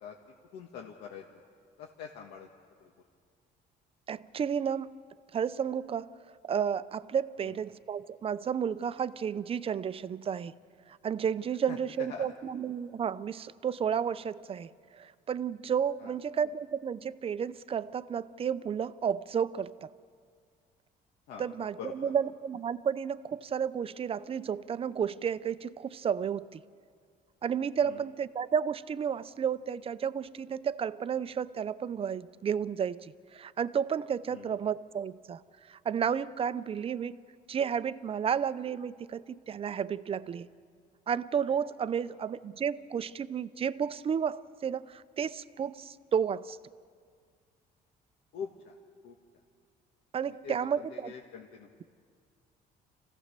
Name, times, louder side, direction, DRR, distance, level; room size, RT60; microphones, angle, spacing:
voice 1, 0.5-1.4 1.8-2.5 2.8-2.9 7.4-7.5 11.7-12.3 16.0-16.1 21.3-22.1 27.8-28.0 34.3-34.5 48.3-48.7 49.0-49.1 50.3-51.7, left 7 dB, 80° left, 0 dB, 1.5 m, -44 dB
voice 2, 4.1-4.9 5.3-6.1 6.4-10.5 10.9-19.9 21.4-26.6 27.4-35.4 35.7-37.2 37.5-40.5 41.1-46.6 50.1-51.1, right 7 dB, 35° right, 16 dB, 0.6 m, -32 dB
27.0 x 16.0 x 6.7 m, 2.1 s
cardioid pair, 110°, 17 cm